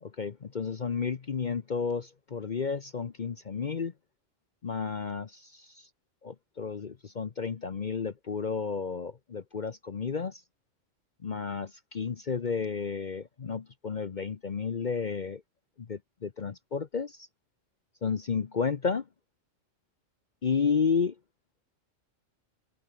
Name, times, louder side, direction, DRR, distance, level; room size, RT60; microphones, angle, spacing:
voice 1, 0.0-3.9 4.6-5.9 6.2-10.4 11.2-15.4 15.9-17.3 18.0-19.0 20.4-21.1, left 5 dB, 40° left, 0.9 m, -32 dB
omnidirectional pair, 1.3 m